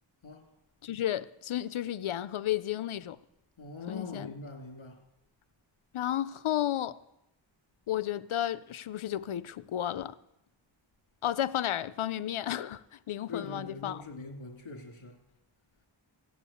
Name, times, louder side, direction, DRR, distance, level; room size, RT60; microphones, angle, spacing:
voice 1, 0.8-3.2 3.9-4.3 5.9-7.0 7.9-10.2 11.2-14.0, left 12 dB, 85° left, 0.7 m, -32 dB
voice 2, 3.6-5.0 13.3-15.2, left 4 dB, 70° left, 2.4 m, -42 dB
15.0 x 8.8 x 8.5 m
cardioid pair, 60°, 48 cm